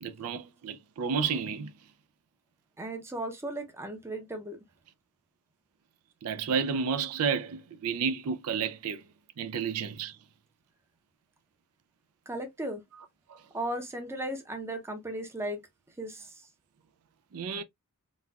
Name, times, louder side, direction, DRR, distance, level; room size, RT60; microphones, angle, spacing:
voice 1, 0.0-1.7 6.2-9.0 9.4-10.1 13.3-13.4 17.3-17.6, right 6 dB, 80° right, 0.4 m, -31 dB
voice 2, 2.8-4.6 12.3-12.8 13.5-15.6 16.0-16.5, right 1 dB, 10° right, 0.6 m, -36 dB
4.0 x 2.2 x 2.3 m
head